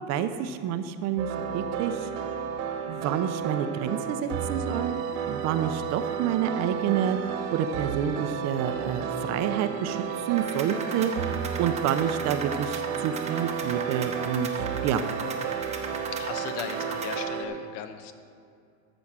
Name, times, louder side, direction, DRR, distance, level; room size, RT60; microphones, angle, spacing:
voice 1, 0.1-1.3 1.5-2.1 2.9-5.0 5.3-7.2 7.5-11.3 11.6-15.0, right 9 dB, 45° right, 10 dB, 0.6 m, -28 dB
sound 1, 1.2-17.5, right 7 dB, 75° right, 1.4 m, -32 dB
sound 2, 10.4-17.2, right 4 dB, 15° right, 0.9 m, -38 dB
voice 2, 16.1-18.1, left 8 dB, 65° left, 8 dB, 1.1 m, -37 dB
14.0 x 6.2 x 6.0 m, 2.3 s
cardioid pair, 155°, 39 cm